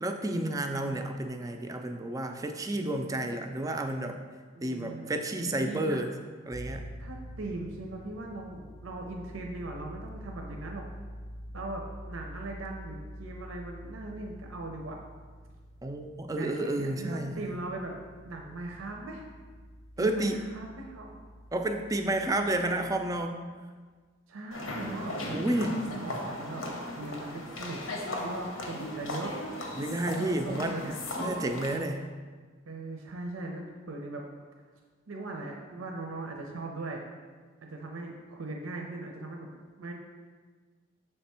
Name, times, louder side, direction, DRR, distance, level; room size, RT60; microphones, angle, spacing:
voice 1, 0.0-4.2 4.6-6.1 6.5-6.9 15.8-17.6 20.0-20.4 21.5-23.4 25.3-25.8 29.7-30.8 31.2-32.1, right 1 dB, 15° right, 5 dB, 0.3 m, -31 dB
voice 2, 4.5-6.1 7.0-10.8 11.5-15.0 16.3-18.0 18.2-19.2 20.0-21.3 24.3-26.6 27.0-27.8 28.2-29.4 30.4-31.0 32.7-34.3 35.1-37.0 37.6-39.9, right 2 dB, 80° right, 1 dB, 0.6 m, -39 dB
sound 1, 6.5-23.3, equal, 50° left, 0.6 m, -47 dB
sound 2, 24.5-31.8, left 1 dB, 80° left, 0.8 m, -37 dB
6.6 x 3.4 x 4.2 m, 1.5 s
head